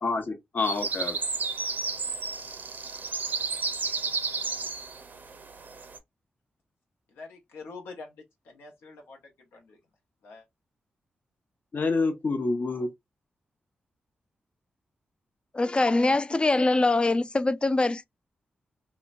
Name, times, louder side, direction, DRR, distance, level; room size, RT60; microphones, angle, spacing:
voice 1, 0.0-1.2 11.7-12.9, left 3 dB, 55° left, 0.7 m, -27 dB
sound 1, 0.6-6.0, right 4 dB, 55° right, 0.6 m, -32 dB
voice 2, 7.2-8.1 8.5-9.2 9.5-9.8 10.2-10.4, left 4 dB, 85° left, 0.8 m, -44 dB
voice 3, 15.5-18.1, left 2 dB, 25° left, 0.3 m, -23 dB
2.8 x 2.2 x 2.5 m
supercardioid pair, 45°, 4 cm